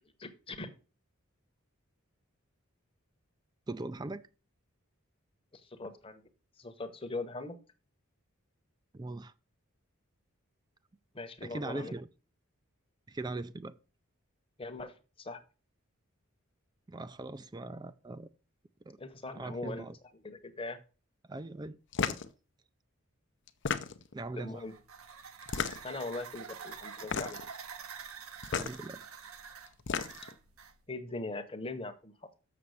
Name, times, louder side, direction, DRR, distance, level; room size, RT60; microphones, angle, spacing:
voice 1, 0.2-0.7 5.5-6.2 6.6-7.6 11.1-11.9 14.6-15.4 19.0-19.9 20.2-20.8 24.4-24.7 25.8-27.4 30.9-32.1, left 2 dB, 25° left, 1.0 m, -40 dB
voice 2, 3.7-4.3 8.9-9.3 11.4-12.1 13.1-13.7 16.9-18.3 18.9-19.0 19.3-20.0 21.3-21.8 22.1-22.2 24.1-24.6 28.5-29.1, right 2 dB, 20° right, 0.4 m, -40 dB
sound 1, 21.9-22.3 23.5-24.2 25.4-26.0 27.0-27.5 28.4-28.7 29.7-30.3, left 6 dB, 55° left, 0.7 m, -33 dB
sound 2, 24.5-30.8, right 6 dB, 80° right, 1.3 m, -47 dB
6.9 x 6.8 x 6.5 m
head